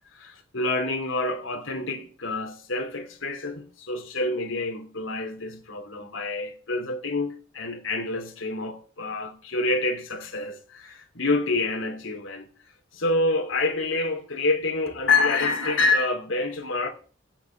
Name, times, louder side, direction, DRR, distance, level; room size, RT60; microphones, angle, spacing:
voice 1, 0.1-12.5 12.9-16.9, left 3 dB, 85° left, 2.7 m, -27 dB
13.0 x 5.5 x 9.1 m
head